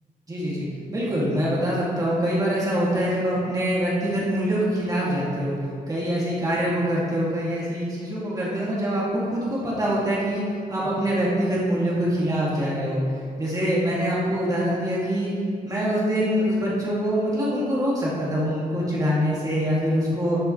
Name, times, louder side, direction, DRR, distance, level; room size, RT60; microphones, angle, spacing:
voice 1, 0.3-5.6 5.9-10.4 10.7-13.0 13.4-15.3 15.6-20.4, equal, 25° right, -7 dB, 2.6 m, -24 dB
14.0 x 7.5 x 3.3 m, 2.3 s
wide cardioid pair, 160°, 15 cm